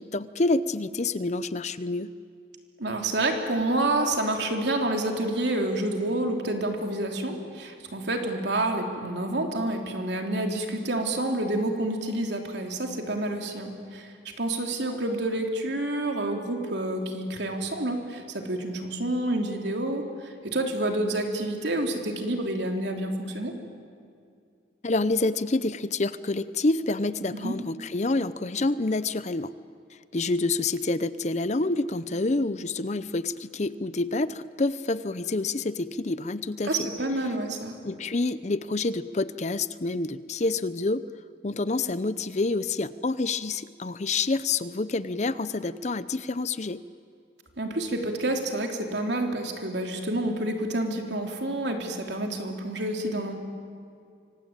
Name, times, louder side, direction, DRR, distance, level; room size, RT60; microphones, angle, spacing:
voice 1, 0.0-2.1 24.8-29.5 30.1-36.9 37.8-41.0 41.4-46.8, left 3 dB, 35° left, 15 dB, 0.6 m, -28 dB
voice 2, 2.8-23.5 27.3-27.5 36.7-37.7 47.6-53.3, right 1 dB, 65° right, 3 dB, 3.4 m, -28 dB
25.5 x 25.0 x 9.0 m, 2.3 s
head